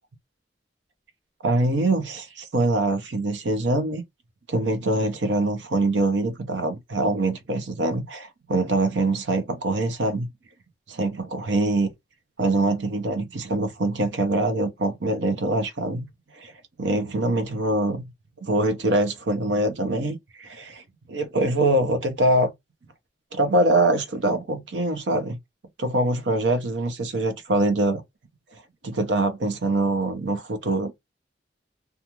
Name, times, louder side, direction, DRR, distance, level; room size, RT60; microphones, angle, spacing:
voice 1, 1.4-4.0 4.5-10.3 10.9-11.9 12.4-16.0 16.4-16.5 16.8-18.1 18.4-20.8 21.1-22.5 23.3-25.4 25.8-28.0 28.8-31.0, right 2 dB, 90° right, 0.7 m, -24 dB
2.4 x 2.3 x 2.9 m
head